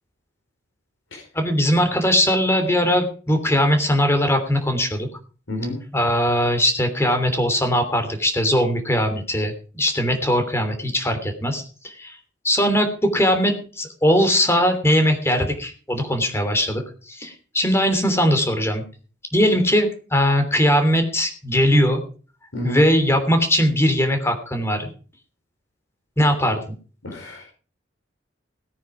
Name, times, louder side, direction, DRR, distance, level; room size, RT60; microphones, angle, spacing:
voice 1, 1.3-5.1 5.9-12.1 12.4-16.8 17.1-18.8 19.3-22.0 22.6-24.9 26.2-26.6, equal, 15° left, 7 dB, 3.1 m, -20 dB
voice 2, 22.5-22.8 27.0-27.5, left 1 dB, 90° left, 0 dB, 4.8 m, -28 dB
17.5 x 9.4 x 5.0 m, 0.39 s
head